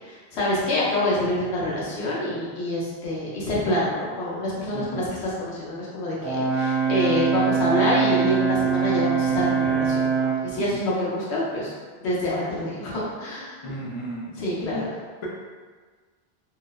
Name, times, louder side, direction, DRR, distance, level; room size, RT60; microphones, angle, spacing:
voice 1, 0.1-11.7 12.0-13.6 14.4-14.8, left 1 dB, 90° left, -6 dB, 1.0 m, -26 dB
voice 2, 4.7-5.1 10.5-10.6 13.6-14.3 14.7-14.9, right 1 dB, 50° left, -4 dB, 0.4 m, -33 dB
Brass instrument, 6.2-10.5, right 6 dB, 70° right, 0.9 m, -23 dB
2.7 x 2.0 x 2.2 m, 1.5 s
omnidirectional pair, 1.1 m